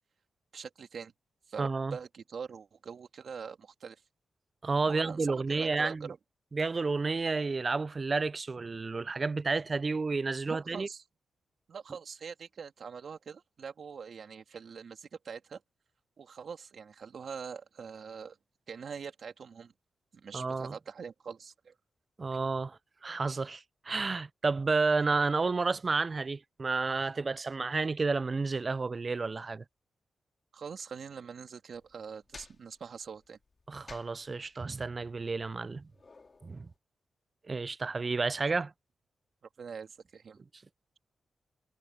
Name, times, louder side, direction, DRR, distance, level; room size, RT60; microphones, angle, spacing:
voice 1, 0.5-1.1 1.5-4.0 4.8-6.1 10.4-11.0 11.7-15.6 16.2-18.4 18.7-19.7 20.1-21.7 30.5-33.4 39.6-40.4, right 6 dB, 65° right, 2.8 m, -43 dB
voice 2, 1.6-2.0 4.6-6.1 6.5-10.9 20.3-20.7 22.2-29.6 33.7-35.9 36.4-36.7 37.5-38.7, right 4 dB, 40° right, 0.3 m, -31 dB
sound 1, 31.7-36.8, left 3 dB, 40° left, 2.4 m, -56 dB
cardioid pair, 80°, 0 cm